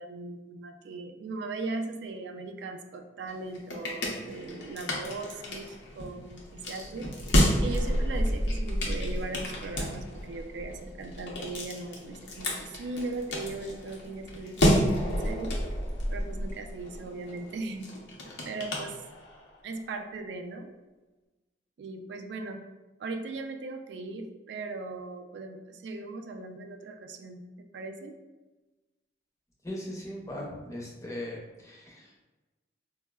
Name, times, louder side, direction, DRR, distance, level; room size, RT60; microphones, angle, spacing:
voice 1, 0.0-7.1 7.6-15.6 16.1-17.9 18.4-19.0 19.6-20.7 21.8-22.6 23.0-27.4 27.7-28.2, right 3 dB, 75° right, 6 dB, 0.3 m, -38 dB
sound 1, 3.3-19.5, equal, 85° left, 0.6 m, -31 dB
voice 2, 29.6-31.4 31.6-32.2, left 1 dB, 15° left, -2 dB, 0.5 m, -39 dB
4.2 x 2.0 x 2.2 m, 1.2 s
head